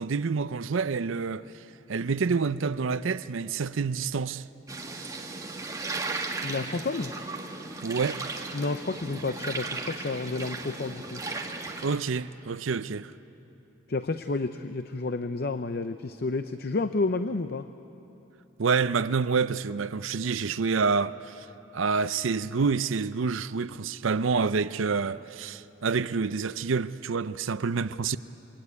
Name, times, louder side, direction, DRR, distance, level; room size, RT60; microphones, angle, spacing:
voice 1, 0.0-1.4 1.9-4.4 7.8-8.2 11.8-13.1 18.6-21.5 21.7-28.2, right 5 dB, 75° right, 0.6 m, -27 dB
sound 1, 4.7-12.0, right 3 dB, 15° right, 1.7 m, -36 dB
voice 2, 6.4-7.1 8.5-11.2 13.9-17.7, left 3 dB, 50° left, 0.6 m, -30 dB
26.0 x 22.0 x 9.7 m
head